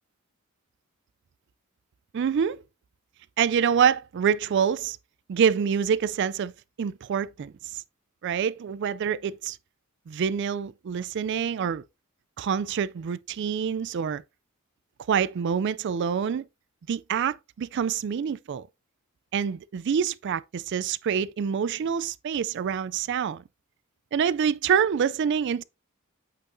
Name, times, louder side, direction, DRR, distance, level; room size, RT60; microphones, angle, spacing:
voice 1, 2.1-2.6 3.4-5.0 5.3-6.5 6.8-7.8 8.2-9.6 10.1-11.8 12.4-14.2 15.1-16.4 16.9-18.6 19.3-23.4 24.1-25.6, right 7 dB, 55° right, 0.3 m, -26 dB
8.2 x 5.8 x 2.6 m
head